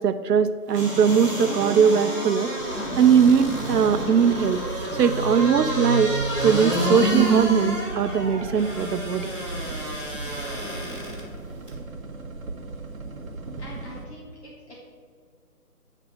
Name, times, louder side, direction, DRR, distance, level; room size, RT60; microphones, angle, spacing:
voice 1, 0.0-2.5 3.0-4.7 4.9-6.1 6.4-9.3, right 7 dB, 90° right, 10 dB, 0.6 m, -20 dB
sound 1, 0.7-11.2 11.7-11.8, right 1 dB, 5° right, 1.8 m, -28 dB
sound 2, 2.6-14.0, right 3 dB, 60° right, 1.1 m, -37 dB
voice 2, 13.6-14.8, left 1 dB, 45° left, -6 dB, 1.6 m, -44 dB
9.6 x 3.3 x 6.1 m, 2.1 s
hypercardioid pair, 165°, 47 cm